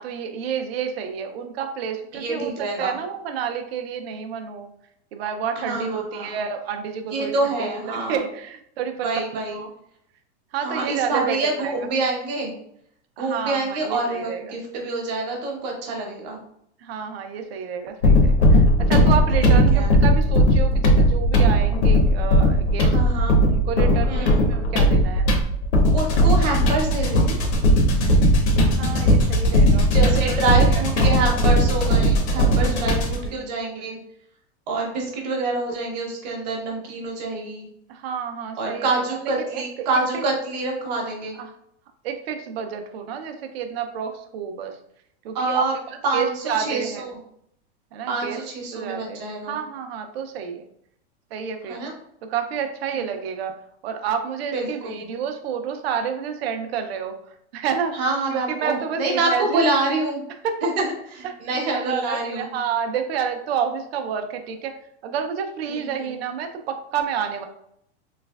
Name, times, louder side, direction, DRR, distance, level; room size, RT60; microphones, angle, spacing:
voice 1, 0.0-4.7 5.1-9.1 9.4-9.7 10.5-11.9 13.2-14.5 16.8-23.0 23.5-25.3 28.6-30.4 30.7-31.1 32.4-33.5 37.9-39.0 39.4-40.2 41.4-41.5 42.0-44.8 45.2-47.1 47.9-48.4 48.7-50.7 51.3-51.8 52.2-53.5 53.8-57.2 57.5-57.9 58.3-59.7 60.4-60.7 61.2-61.4 61.7-64.8 65.0-67.4, right 7 dB, 65° right, 6 dB, 0.5 m, -30 dB
voice 2, 2.1-3.0 5.6-6.4 7.1-8.2 9.0-9.6 10.6-12.5 13.2-16.4 19.4-19.9 22.8-23.4 24.1-24.5 25.9-27.4 29.9-34.0 34.7-37.7 38.6-41.4 45.3-45.7 46.0-47.2 48.1-49.6 51.7-51.9 54.5-55.1 57.9-60.2 60.6-60.9 61.4-62.6 65.7-66.2, right 2 dB, 40° right, 0 dB, 0.8 m, -26 dB
sound 1, 18.0-33.3, equal, 75° left, 0.8 m, -18 dB
3.2 x 3.2 x 2.2 m, 0.72 s
supercardioid pair, 175°, 34 cm